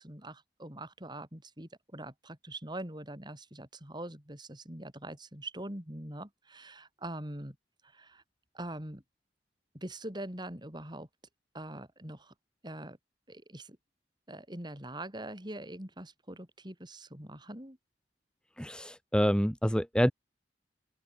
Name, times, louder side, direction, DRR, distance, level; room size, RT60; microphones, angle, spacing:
voice 1, 0.0-7.6 7.8-8.2 8.5-9.0 9.7-11.1 11.5-12.3 12.6-13.0 13.3-13.8 14.3-17.8, right 1 dB, 25° right, 6.4 m, -43 dB
voice 2, 18.6-20.1, equal, 5° left, 1.6 m, -27 dB
open air
head